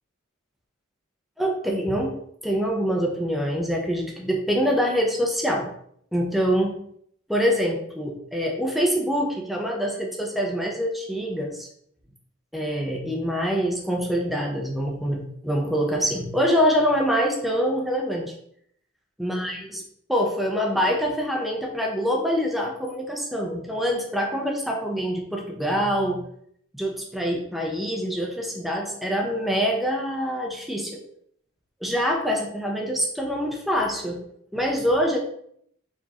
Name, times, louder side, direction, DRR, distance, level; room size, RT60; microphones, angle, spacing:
voice 1, 1.4-5.7 6.1-6.8 7.3-11.7 12.5-18.3 19.2-19.8 20.1-26.2 26.7-31.0 31.8-34.2 34.5-35.2, equal, ahead, 0 dB, 0.7 m, -25 dB
4.5 x 3.6 x 2.9 m, 0.67 s
head